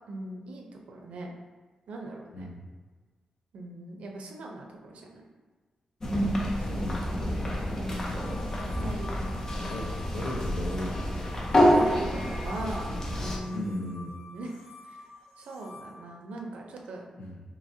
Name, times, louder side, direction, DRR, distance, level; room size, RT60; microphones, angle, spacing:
voice 1, 0.1-1.3 1.9-2.5 3.5-5.2 7.7-8.3 8.8-9.5 11.7-12.9 13.2-14.5 14.8-15.0 15.4-17.0, right 2 dB, 80° right, 1 dB, 0.5 m, -40 dB
voice 2, 2.3-2.7 6.6-7.6 9.7-11.2 13.5-14.2 17.2-17.4, left 1 dB, 75° left, -1 dB, 0.6 m, -37 dB
sound 1, 6.0-13.4, equal, 25° left, 0.5 m, -28 dB
sound 2, 8.0-15.9, left 3 dB, 45° left, 1.3 m, -47 dB
3.9 x 2.8 x 2.7 m, 1.4 s
wide cardioid pair, 165°, 2 cm